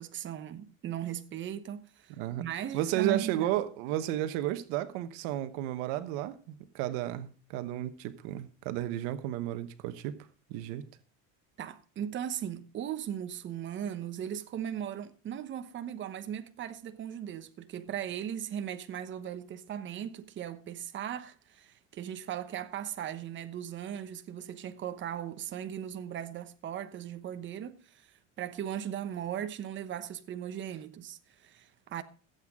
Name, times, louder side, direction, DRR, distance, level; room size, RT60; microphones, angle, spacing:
voice 1, 0.0-3.7 11.6-32.0, right 10 dB, 35° right, 1.1 m, -38 dB
voice 2, 2.7-10.2 10.5-10.8, right 13 dB, 80° right, 1.2 m, -33 dB
16.0 x 8.2 x 3.6 m
cardioid pair, 120°, 32 cm